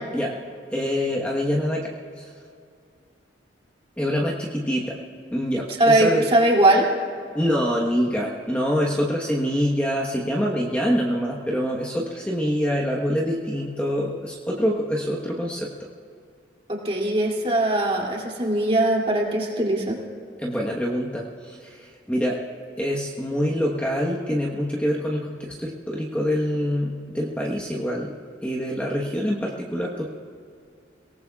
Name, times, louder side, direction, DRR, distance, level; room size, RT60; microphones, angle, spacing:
voice 1, 0.7-2.3 4.0-5.0 5.3-6.3 7.3-15.7 20.4-22.4 22.8-28.1 28.4-30.1, equal, 5° left, -3 dB, 1.2 m, -25 dB
voice 2, 5.8-6.8 16.7-20.0, right 1 dB, 30° right, -2 dB, 2.8 m, -20 dB
30.0 x 18.5 x 2.4 m, 2.4 s
head